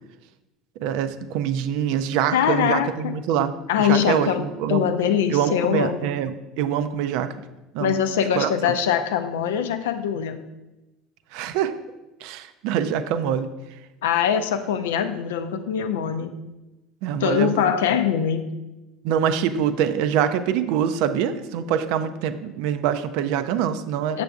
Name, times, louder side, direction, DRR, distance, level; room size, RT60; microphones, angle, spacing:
voice 1, 0.8-4.9 5.3-7.3 7.7-8.0 8.4-8.7 11.3-11.7 12.2-13.5 17.0-17.7 19.0-24.2, right 9 dB, 60° right, 11 dB, 0.4 m, -24 dB
voice 2, 2.3-3.1 3.7-6.1 7.8-10.4 14.0-16.3 17.2-18.5 24.1-24.2, left 8 dB, 70° left, 9 dB, 0.4 m, -23 dB
6.7 x 6.7 x 2.4 m, 1.0 s
figure-of-eight pair, 70°, 0 cm